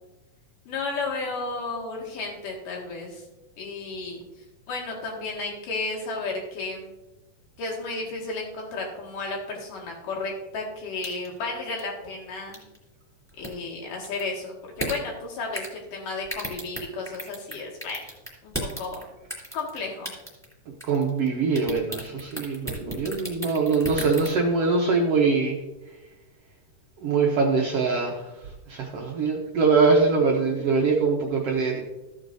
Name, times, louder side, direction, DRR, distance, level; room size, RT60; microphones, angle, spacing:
voice 1, 0.7-3.3 3.6-4.2 4.7-6.9 7.6-12.6 13.4-18.1 18.4-19.1 19.5-20.1, left 3 dB, 75° left, -2 dB, 3.6 m, -33 dB
sound 1, 11.0-11.4 11.8-11.9 12.5-12.8 13.3-13.5 14.0-14.3 14.8-15.0 15.5-15.8 16.2-17.5 17.8-19.0 19.3-19.8 20.0-20.5 20.8-21.3 21.5-24.3, right 1 dB, ahead, 2.4 m, -33 dB
voice 2, 20.9-25.6 27.0-28.2 28.7-31.8, right 4 dB, 65° right, 0 dB, 1.6 m, -23 dB
14.5 x 8.2 x 2.7 m, 1.0 s
omnidirectional pair, 3.8 m